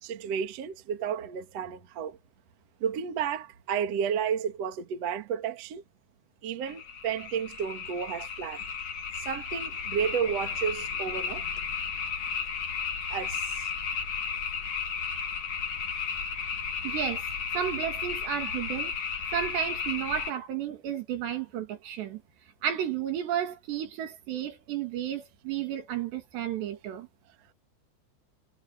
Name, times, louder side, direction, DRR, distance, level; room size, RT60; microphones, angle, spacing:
voice 1, 0.0-2.2 2.8-5.8 6.4-8.7 9.1-11.5 13.1-13.7, right 7 dB, 50° right, 2.1 m, -32 dB
sound 1, 6.6-20.3, left 6 dB, 45° left, 2.9 m, -34 dB
voice 2, 16.8-17.3 17.5-18.9 19.3-22.2 22.6-27.1, right 10 dB, 70° right, 4.5 m, -32 dB
omnidirectional pair, 5.1 m